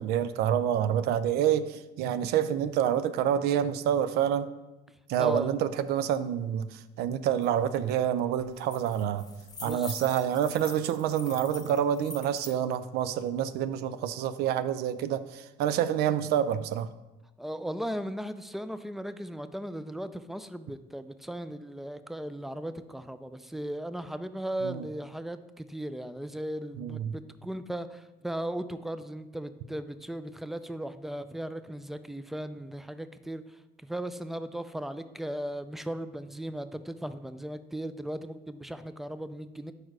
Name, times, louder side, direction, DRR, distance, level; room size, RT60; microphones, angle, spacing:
voice 1, 0.0-4.5 5.1-9.2 9.6-16.9 24.6-24.9 26.8-27.1, right 9 dB, 75° right, 12 dB, 0.4 m, -27 dB
voice 2, 5.2-5.5 9.6-10.0 17.4-39.7, right 1 dB, ahead, 12 dB, 0.3 m, -37 dB
sound 1, 7.4-7.5 7.8-8.1 8.4-12.6, left 3 dB, 20° left, 0.9 m, -44 dB
4.8 x 4.4 x 4.7 m, 1.0 s
supercardioid pair, 80°, 17 cm